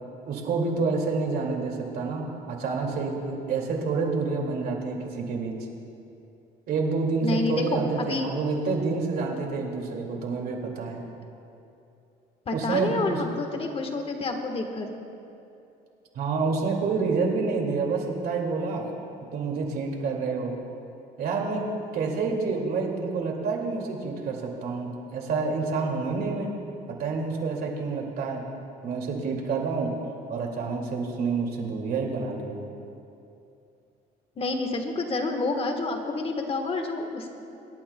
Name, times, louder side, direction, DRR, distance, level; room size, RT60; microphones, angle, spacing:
voice 1, 0.3-5.6 6.7-11.0 12.5-13.2 16.1-18.9 19.3-20.6 21.2-26.6 26.9-28.4 28.8-29.9 30.3-32.6, right 4 dB, 65° right, 1 dB, 2.2 m, -28 dB
voice 2, 7.2-8.3 12.5-14.9 34.4-37.3, left 3 dB, 35° left, 4 dB, 1.3 m, -29 dB
25.5 x 11.5 x 2.2 m, 2.7 s
cardioid pair, 110°, 17 cm